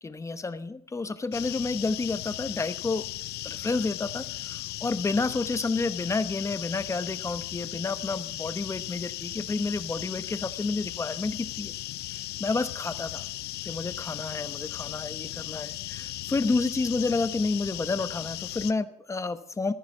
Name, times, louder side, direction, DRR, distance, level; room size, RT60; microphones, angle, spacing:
voice 1, 0.0-3.0 3.4-11.7 12.4-13.2 13.7-19.7, left 3 dB, 15° left, 12 dB, 0.9 m, -30 dB
sound 1, 1.3-18.7, left 16 dB, 75° left, 0.5 m, -37 dB
14.5 x 10.0 x 5.9 m, 0.70 s
cardioid pair, 110°, 17 cm